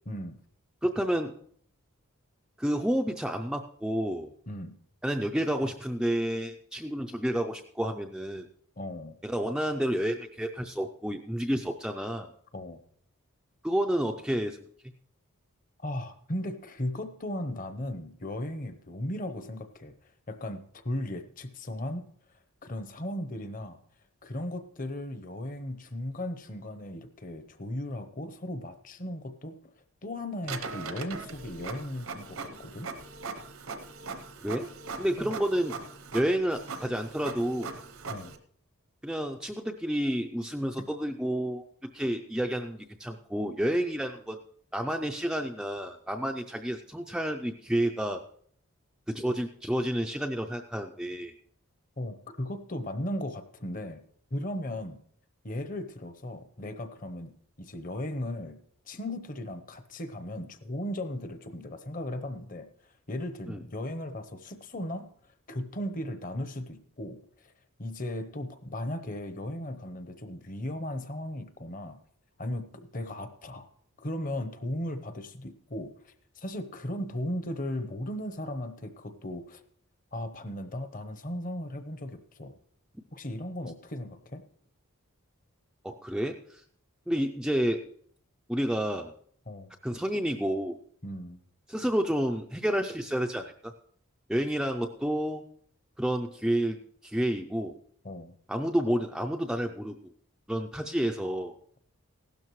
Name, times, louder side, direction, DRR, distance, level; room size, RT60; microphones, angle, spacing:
voice 1, 0.1-0.4 4.5-4.8 8.8-9.2 12.5-12.8 15.8-19.9 20.3-22.0 22.6-23.8 24.2-29.6 30.0-32.9 35.2-35.3 38.1-38.3 52.0-54.0 54.3-55.0 55.4-58.6 58.9-62.7 63.1-65.1 65.5-67.5 67.8-72.0 72.4-73.7 74.0-79.6 80.1-82.6 83.1-84.4 89.5-89.7 91.0-91.4 98.0-98.4, left 1 dB, 35° left, 9 dB, 0.8 m, -36 dB
voice 2, 0.8-1.4 2.6-4.3 5.0-8.5 9.2-12.3 13.6-14.6 34.4-34.7 35.0-35.8 36.1-37.7 39.0-41.7 41.9-44.4 44.7-48.2 49.1-51.3 63.5-63.6 85.8-86.6 87.1-87.9 88.5-89.1 89.8-90.8 91.7-93.7 94.3-95.4 96.0-97.8 98.5-100.0 100.5-101.5, equal, 5° right, 3 dB, 0.4 m, -30 dB
Printer, 30.4-38.4, right 4 dB, 70° right, 0.9 m, -40 dB
16.0 x 12.0 x 3.1 m, 0.62 s
head